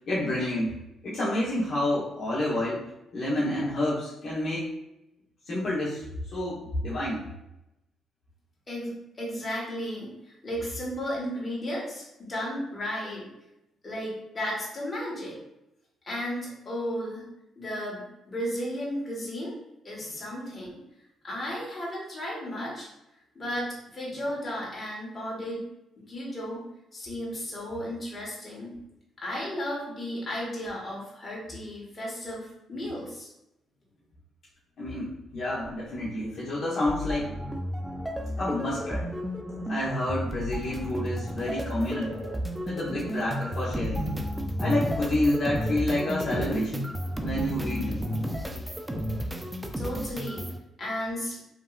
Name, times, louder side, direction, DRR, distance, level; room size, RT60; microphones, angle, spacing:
voice 1, 0.1-0.7 1.0-2.9 3.1-4.7 5.5-6.0 6.3-7.3 34.8-37.3 38.4-39.1 39.7-42.1 42.6-44.1 44.6-46.8 47.1-48.0, left 1 dB, 55° left, -7 dB, 0.9 m, -29 dB
voice 2, 8.7-13.3 13.8-15.4 16.0-17.2 17.6-19.5 19.8-20.8 21.2-22.9 23.3-25.6 26.1-26.7 26.9-28.8 29.2-33.3 49.7-50.5 50.8-51.4, equal, 30° left, -5 dB, 1.3 m, -34 dB
sound 1, 36.9-50.6, equal, 10° right, 0.3 m, -32 dB
3.0 x 2.6 x 2.3 m, 0.88 s
cardioid pair, 90°, 0 cm